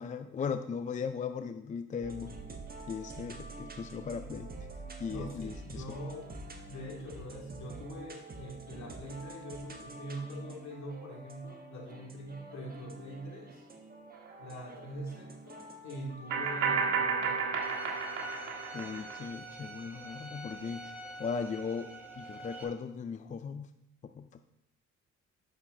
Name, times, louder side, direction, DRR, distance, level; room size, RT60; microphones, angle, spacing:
voice 1, 0.0-2.3 2.9-4.5 5.0-5.8 18.7-21.9 22.2-23.7 24.0-24.4, left 6 dB, 25° left, 9 dB, 0.4 m, -38 dB
sound 1, 2.0-17.4, right 2 dB, 30° right, 1.3 m, -48 dB
voice 2, 5.1-6.3 6.7-13.6 14.4-17.5, right 1 dB, 65° left, -1 dB, 2.3 m, -43 dB
sound 2, 14.3-14.4 16.3-19.2, right 5 dB, 80° right, 1.9 m, -31 dB
Bowed string instrument, 17.6-22.6, right 2 dB, 5° right, 1.5 m, -46 dB
8.3 x 6.5 x 3.7 m, 0.80 s
cardioid pair, 90°, 30 cm